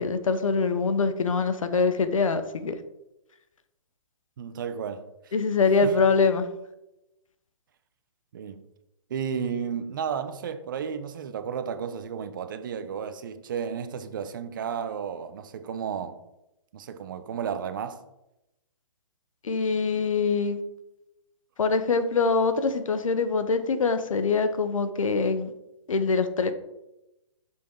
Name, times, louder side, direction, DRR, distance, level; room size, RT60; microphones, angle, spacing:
voice 1, 0.0-2.8 5.3-6.4 19.4-20.6 21.6-25.5 25.9-26.5, left 4 dB, 90° left, 1.0 m, -24 dB
voice 2, 4.4-5.3 5.8-6.0 8.3-8.7 9.1-16.2 16.7-18.0, right 7 dB, 40° right, 0.7 m, -33 dB
7.3 x 5.9 x 3.8 m
hypercardioid pair, 165°, 17 cm